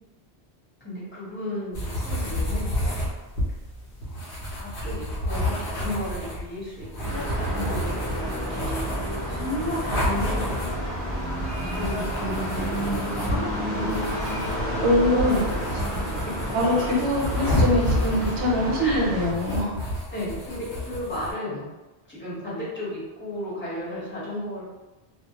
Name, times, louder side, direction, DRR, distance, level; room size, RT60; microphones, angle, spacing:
voice 1, 0.8-2.7 4.5-8.8 9.2-10.9 11.7-15.8 18.8-19.1 20.1-21.7 22.1-24.6, left 1 dB, 10° left, -10 dB, 0.9 m, -34 dB
sound 1, 1.7-21.3, left 1 dB, 60° left, 0.8 m, -30 dB
sound 2, 7.0-19.3, equal, 15° right, 0.8 m, -30 dB
voice 2, 14.8-15.4 16.5-19.7, left 1 dB, 90° right, -2 dB, 0.9 m, -23 dB
2.2 x 2.1 x 2.7 m, 1.1 s
omnidirectional pair, 1.1 m